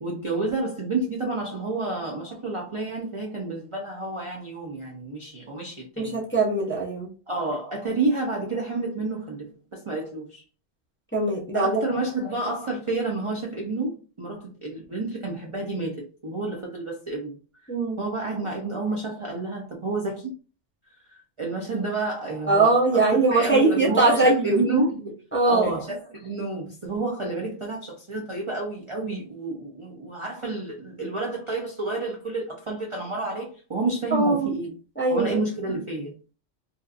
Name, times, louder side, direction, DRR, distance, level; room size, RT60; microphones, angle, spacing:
voice 1, 0.0-6.2 7.3-10.4 11.5-17.4 18.0-20.3 21.1-25.2 25.5-34.7 35.1-36.1, right 2 dB, 55° right, 0.3 m, -30 dB
voice 2, 6.0-7.1 11.1-11.8 17.7-18.0 22.5-24.6 25.3-25.7 34.1-34.5 35.0-35.4, right 3 dB, 15° left, 0.5 m, -21 dB
2.7 x 2.4 x 2.4 m
omnidirectional pair, 1.3 m